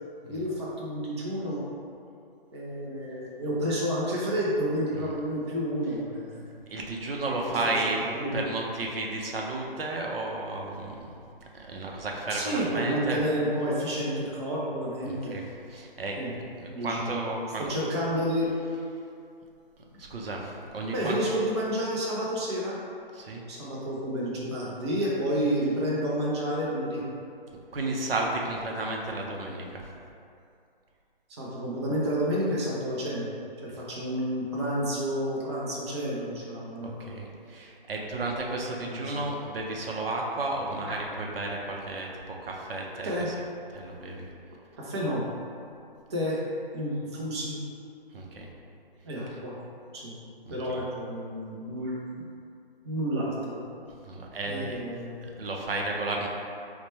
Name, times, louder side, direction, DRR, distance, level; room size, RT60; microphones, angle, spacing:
voice 1, 0.3-1.6 2.5-6.4 7.5-8.4 12.3-15.4 16.2-16.3 16.7-17.3 17.6-18.5 20.9-22.8 23.5-27.0 31.3-33.3 33.6-37.2 38.9-39.2 40.9-41.0 43.0-43.3 44.8-45.2 46.1-46.4 46.7-47.6 49.0-49.6 49.9-50.2 50.5-52.0 52.8-53.6 54.5-55.2, equal, 30° right, -5 dB, 0.5 m, -30 dB
voice 2, 6.7-8.0 8.3-11.1 11.5-13.2 15.0-15.4 15.7-16.2 16.6-17.7 20.0-21.2 23.1-23.4 27.7-29.8 33.7-33.8 36.8-43.3 43.7-44.3 48.1-48.5 50.7-50.8 54.0-54.8 55.2-56.3, right 2 dB, 75° right, 0 dB, 0.6 m, -33 dB
2.9 x 2.2 x 4.1 m, 2.5 s
figure-of-eight pair, 145°, 29 cm